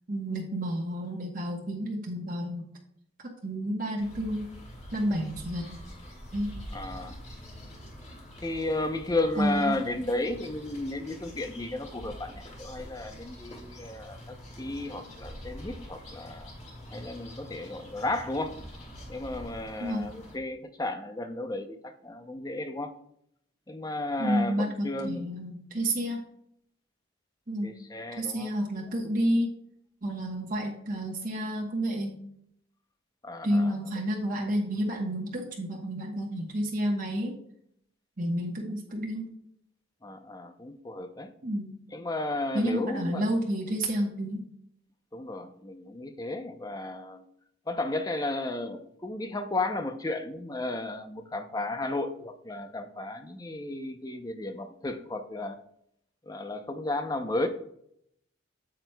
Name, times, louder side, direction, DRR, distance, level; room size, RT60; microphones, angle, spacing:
voice 1, 0.1-2.7 3.2-4.5 4.9-5.7 6.3-6.6 9.4-9.7 19.8-20.1 24.2-26.2 27.5-27.7 28.2-29.6 30.0-32.2 33.4-37.4 38.2-39.3 41.4-41.7 42.5-44.5, equal, 45° right, 0 dB, 1.1 m, -30 dB
sound 1, 4.0-20.4, equal, 35° left, 2.0 m, -45 dB
voice 2, 6.7-7.2 8.4-16.5 16.9-18.6 19.1-23.0 23.7-25.2 27.6-28.5 33.2-33.7 40.0-41.3 41.9-43.2 45.1-47.2 47.7-55.6 56.2-57.5, left 2 dB, 20° left, 8 dB, 0.6 m, -33 dB
8.7 x 7.9 x 2.3 m, 0.70 s
head